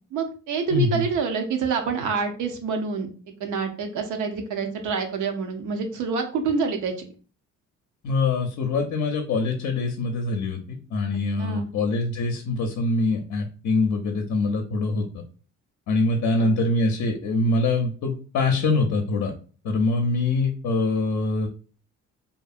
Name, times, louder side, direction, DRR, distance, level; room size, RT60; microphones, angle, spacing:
voice 1, 0.1-3.1 3.4-6.9 11.4-11.7 16.4-16.5, right 5 dB, 80° right, 5 dB, 0.7 m, -27 dB
voice 2, 0.7-1.0 8.0-15.2 15.9-19.3 19.6-21.5, left 3 dB, 65° left, 3 dB, 0.5 m, -24 dB
2.6 x 2.6 x 2.4 m, 0.39 s
cardioid pair, 90°, 30 cm